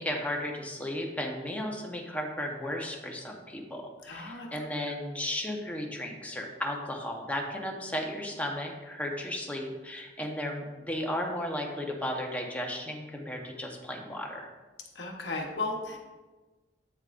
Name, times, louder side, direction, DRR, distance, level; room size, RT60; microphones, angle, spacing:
voice 1, 0.0-14.5, left 1 dB, 10° left, 0 dB, 1.0 m, -35 dB
voice 2, 4.0-4.5 14.9-16.0, left 3 dB, 70° left, 1 dB, 1.0 m, -35 dB
8.2 x 7.2 x 2.5 m, 1.2 s
head